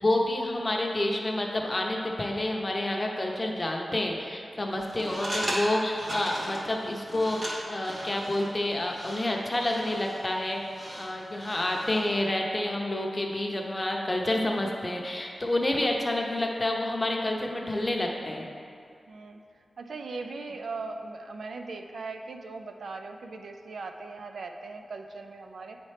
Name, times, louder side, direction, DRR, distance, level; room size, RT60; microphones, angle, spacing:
voice 1, 0.0-18.5, left 1 dB, 25° left, 0 dB, 0.6 m, -29 dB
sound 1, 4.8-12.1, equal, 55° right, 1.4 m, -37 dB
voice 2, 19.1-19.4 19.8-25.8, right 3 dB, 85° right, 4 dB, 0.4 m, -39 dB
8.7 x 4.2 x 3.3 m, 2.4 s
wide cardioid pair, 135°, 0 cm